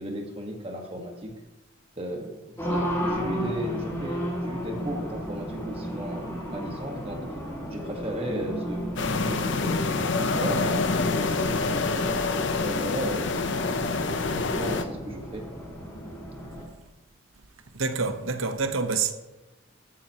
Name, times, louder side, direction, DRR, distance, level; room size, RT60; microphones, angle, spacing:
voice 1, 0.0-1.3 2.0-7.2 7.7-8.9 9.1-12.1 12.6-13.6 14.0-15.5, equal, 25° right, 1.6 m, -35 dB
Race car auto racing, 2.6-16.6, equal, 15° left, 3.1 m, -34 dB
sound 1, 9.0-14.8, left 3 dB, 60° left, 0.7 m, -26 dB
voice 2, 17.7-19.2, right 4 dB, 75° right, 1.0 m, -27 dB
14.0 x 10.5 x 3.0 m
head